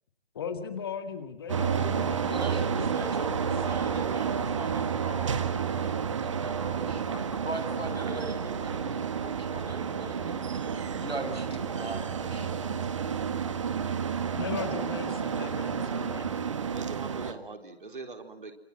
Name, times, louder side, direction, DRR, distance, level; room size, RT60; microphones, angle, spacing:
voice 1, 0.3-4.0 12.3-12.7 14.3-16.7, left 6 dB, 25° left, 8 dB, 2.0 m, -39 dB
sound 1, 1.5-17.3, right 7 dB, 30° right, 1.9 m, -30 dB
voice 2, 2.3-7.0 7.4-12.5, right 2 dB, 70° right, 7 dB, 7.0 m, -40 dB
voice 3, 15.2-15.6 16.7-18.5, right 3 dB, 50° right, 6 dB, 4.3 m, -42 dB
27.5 x 27.5 x 7.8 m, 0.76 s
figure-of-eight pair, 150°, 32 cm